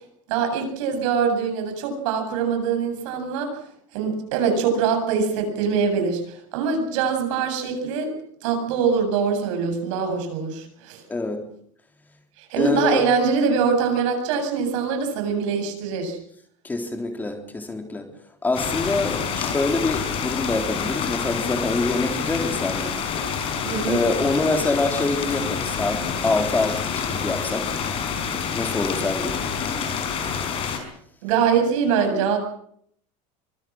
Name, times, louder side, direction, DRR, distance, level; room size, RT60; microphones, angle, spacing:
voice 1, 0.3-3.5 3.9-8.1 8.4-11.0 12.4-16.2 23.6-24.0 31.2-32.4, right 6 dB, 75° right, 5 dB, 7.8 m, -23 dB
voice 2, 11.1-11.4 12.6-13.0 16.6-18.1 18.4-23.0 23.9-27.6 28.5-29.4, left 3 dB, 10° left, 5 dB, 3.6 m, -25 dB
sound 1, 18.5-30.8, left 7 dB, 35° left, 5.2 m, -27 dB
24.5 x 22.5 x 6.3 m, 0.66 s
cardioid pair, 160°, 16 cm